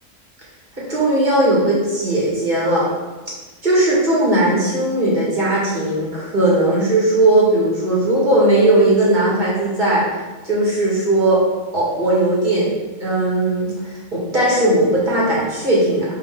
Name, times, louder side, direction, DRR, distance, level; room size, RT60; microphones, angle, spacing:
voice 1, 0.8-2.9 3.6-10.0 10.4-11.4 11.7-12.7 13.0-16.1, right 1 dB, 30° right, -6 dB, 2.2 m, -17 dB
6.6 x 5.3 x 3.7 m, 1.2 s
omnidirectional pair, 1.5 m